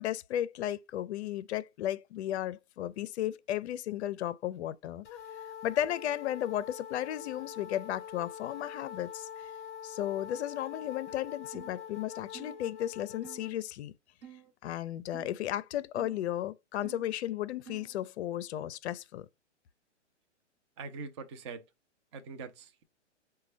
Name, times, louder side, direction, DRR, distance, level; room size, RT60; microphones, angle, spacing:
voice 1, 0.0-5.1 5.6-9.5 9.8-13.9 14.6-19.3, left 12 dB, 65° left, 0.5 m, -34 dB
sound 1, 5.0-13.5, left 8 dB, 20° left, 0.6 m, -45 dB
sound 2, 11.5-11.8 12.3-12.6 13.2-13.4 14.2-14.5 15.1-15.4 16.0-16.2 16.8-17.1 17.7-18.0, right 9 dB, 50° right, 1.0 m, -50 dB
voice 2, 20.8-21.6 22.1-22.8, right 4 dB, 25° right, 0.4 m, -43 dB
5.0 x 2.2 x 3.1 m
hypercardioid pair, 140°, 36 cm